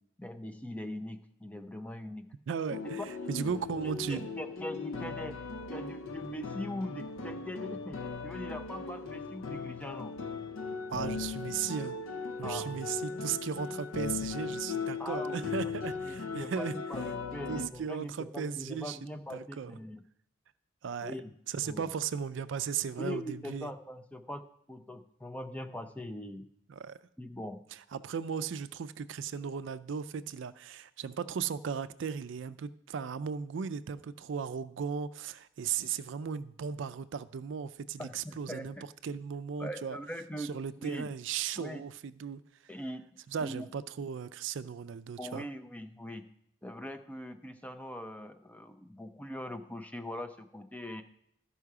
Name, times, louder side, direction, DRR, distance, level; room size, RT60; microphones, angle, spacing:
voice 1, 0.2-2.3 3.8-5.4 5.7-10.2 12.4-12.7 15.0-20.0 21.0-21.3 21.6-21.9 23.0-26.5 27.2-27.6 38.0-38.8 39.6-41.1 41.6-41.8 42.7-43.0 43.4-43.7 45.2-46.3 46.6-51.0, equal, 5° left, 7 dB, 0.4 m, -41 dB
voice 2, 2.5-4.3 10.9-12.0 12.4-16.7 17.5-19.0 19.3-19.8 20.8-21.1 21.5-23.7 26.7-27.0 27.9-38.8 39.0-40.0 40.4-42.4 43.3-45.5, right 7 dB, 70° right, 14 dB, 0.4 m, -36 dB
sound 1, 2.7-17.7, left 4 dB, 80° left, 0.5 m, -38 dB
12.5 x 5.5 x 4.8 m, 0.75 s
head